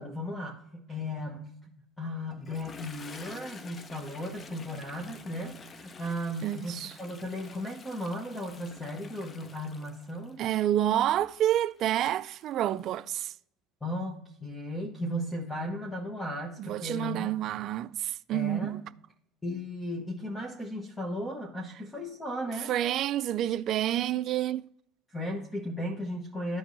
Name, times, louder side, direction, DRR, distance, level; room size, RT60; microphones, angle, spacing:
voice 1, 0.0-1.5 2.0-10.4 13.8-17.3 18.3-18.7 19.4-22.7 25.1-26.6, equal, 15° left, 1.0 m, -36 dB
Toilet flush, 2.3-12.9, left 4 dB, 30° left, 0.5 m, -49 dB
voice 2, 6.4-6.9 10.4-13.3 16.6-18.8 22.7-24.6, right 12 dB, 50° right, 0.3 m, -28 dB
13.5 x 4.6 x 2.6 m
cardioid pair, 120°, 0 cm